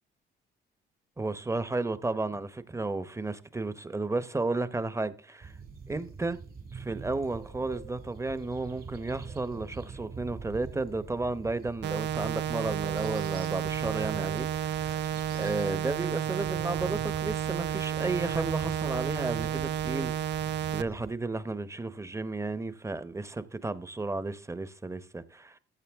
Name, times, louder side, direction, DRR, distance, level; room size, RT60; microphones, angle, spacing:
voice 1, 1.2-5.5 5.9-6.4 6.7-15.0 15.3-20.4 20.7-25.6, right 3 dB, 15° right, 0.9 m, -33 dB
sound 1, 5.4-21.2, right 4 dB, 45° right, 2.3 m, -44 dB
sound 2, 11.8-20.8, right 10 dB, 65° right, 0.5 m, -31 dB
15.0 x 8.7 x 3.5 m
cardioid pair, 90°, 20 cm